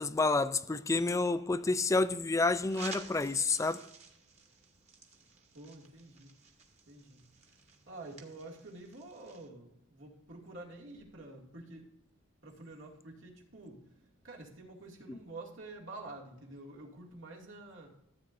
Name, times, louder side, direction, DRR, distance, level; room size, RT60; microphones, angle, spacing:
voice 1, 0.0-3.8 15.1-15.2, left 3 dB, 15° left, 0.3 m, -29 dB
sound 1, 2.7-9.5, right 4 dB, 35° right, 1.4 m, -52 dB
voice 2, 5.5-6.3 6.9-7.5 7.9-11.9 12.4-17.9, right 2 dB, 70° right, 2.3 m, -49 dB
14.0 x 8.4 x 2.6 m
head